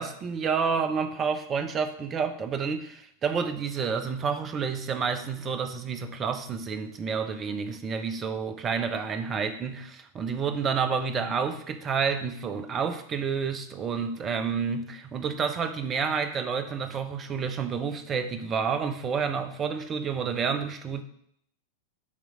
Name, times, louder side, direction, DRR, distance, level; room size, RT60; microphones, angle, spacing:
voice 1, 0.0-21.0, right 6 dB, 25° right, 8 dB, 0.8 m, -29 dB
8.6 x 3.1 x 6.3 m, 0.69 s
figure-of-eight pair, 90°, 0 cm